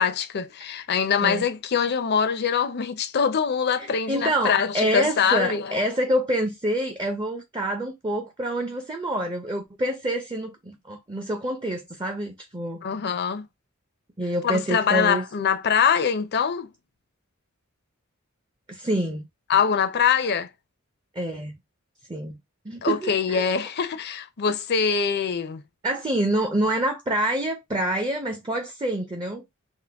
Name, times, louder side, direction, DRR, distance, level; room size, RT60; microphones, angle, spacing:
voice 1, 0.0-5.7 12.8-13.5 14.4-16.7 19.5-20.5 22.8-25.6, left 6 dB, 50° left, 0.5 m, -23 dB
voice 2, 3.8-12.8 14.2-15.2 18.7-19.3 21.2-21.6 22.1-22.4 22.6-23.4 25.8-29.4, right 1 dB, 20° right, 0.5 m, -27 dB
3.7 x 2.1 x 3.4 m
head